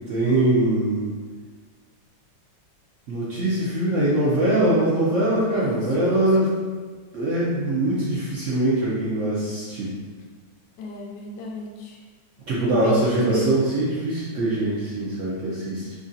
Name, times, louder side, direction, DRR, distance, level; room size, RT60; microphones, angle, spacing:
voice 1, 0.1-1.1 3.1-6.5 7.1-9.9 12.5-15.9, right 1 dB, 60° right, -8 dB, 0.8 m, -22 dB
voice 2, 5.5-6.5 10.8-12.0 12.7-13.5, left 2 dB, 75° left, 0 dB, 1.1 m, -34 dB
3.7 x 2.9 x 2.7 m, 1.5 s
omnidirectional pair, 1.9 m